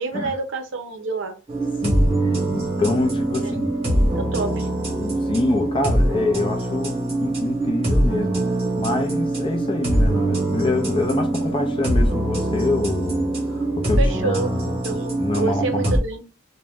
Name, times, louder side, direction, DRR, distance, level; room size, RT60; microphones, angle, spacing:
voice 1, 0.0-1.3 3.4-3.7 3.9-4.7 14.0-16.2, right 3 dB, 65° right, 0.6 m, -28 dB
sound 1, 1.5-16.0, right 1 dB, 30° right, 0.9 m, -23 dB
voice 2, 1.8-3.7 5.0-8.4 8.8-15.9, left 2 dB, 25° left, 0.4 m, -25 dB
2.4 x 2.1 x 3.4 m
head